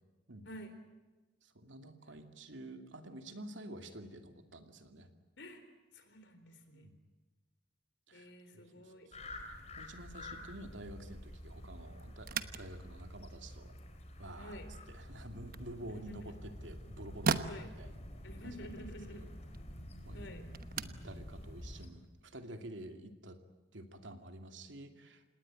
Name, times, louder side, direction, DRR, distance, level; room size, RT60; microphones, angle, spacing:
voice 1, 1.4-5.1 6.7-6.9 8.1-8.3 8.7-8.9 9.8-13.7 14.2-14.6 14.9-18.0 18.4-18.6 19.1-19.3 20.0-20.3 20.8-23.4 23.7-25.3, right 1 dB, 85° right, 6 dB, 2.5 m, -49 dB
voice 2, 5.9-6.9 8.1-9.1 14.4-14.7 16.1-16.3 17.4-17.7 18.2-19.2 20.1-20.4, equal, 70° left, 9 dB, 4.0 m, -50 dB
sound 1, 9.1-21.9, left 1 dB, 35° left, 4.1 m, -49 dB
sound 2, 12.2-22.7, right 5 dB, 50° right, 1.1 m, -43 dB
27.5 x 19.5 x 8.9 m, 1.2 s
head